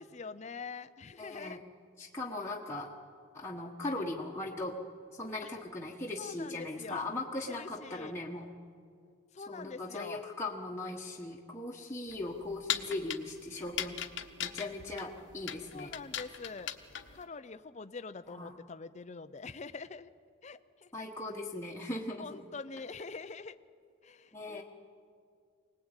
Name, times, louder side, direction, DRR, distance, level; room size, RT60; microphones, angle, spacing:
voice 1, 0.0-1.6 5.4-5.5 6.2-7.0 7.5-8.2 9.3-10.2 15.7-16.7 17.1-20.1 20.4-20.9 22.2-23.6 24.0-24.6, left 4 dB, 35° left, 11 dB, 0.5 m, -44 dB
voice 2, 1.2-1.6 2.0-2.9 3.3-4.8 5.1-8.5 9.5-14.0 14.4-15.9 18.3-18.6 20.9-22.3 24.3-24.6, left 2 dB, 15° left, -3 dB, 1.3 m, -39 dB
sound 1, 12.1-17.2, left 10 dB, 60° left, 1.1 m, -39 dB
24.0 x 19.5 x 8.9 m, 2.3 s
head